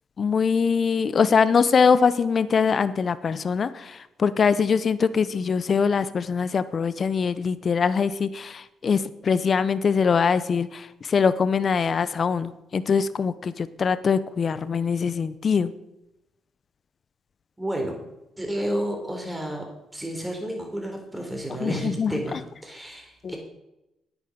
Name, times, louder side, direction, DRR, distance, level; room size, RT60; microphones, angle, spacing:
voice 1, 0.2-15.7 21.5-22.4 23.2-23.3, left 6 dB, 45° left, 14 dB, 0.7 m, -23 dB
voice 2, 17.6-17.9 18.4-19.7 19.9-23.4, right 1 dB, 10° right, 2 dB, 3.8 m, -31 dB
9.9 x 9.4 x 6.7 m, 0.91 s
cardioid pair, 90°, 0 cm